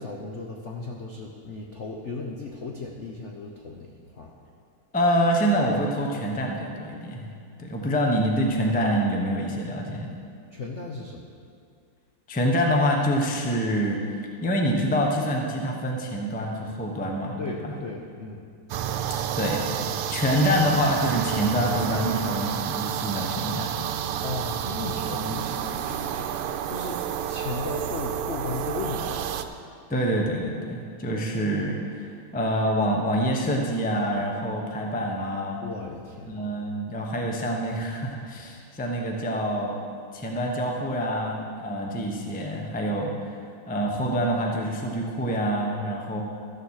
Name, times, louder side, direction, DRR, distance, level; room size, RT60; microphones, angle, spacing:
voice 1, 0.0-4.3 10.5-11.3 17.4-18.4 24.2-29.3 35.6-36.4, left 3 dB, 65° left, 0 dB, 0.7 m, -36 dB
voice 2, 4.9-7.3 7.6-10.1 12.3-14.0 14.4-17.7 19.4-23.7 29.9-35.6 36.3-39.8 40.1-46.2, equal, 10° left, 0 dB, 0.4 m, -26 dB
sound 1, 18.7-29.4, right 9 dB, 85° right, 1.6 m, -30 dB
13.5 x 7.2 x 6.5 m, 2.3 s
omnidirectional pair, 2.4 m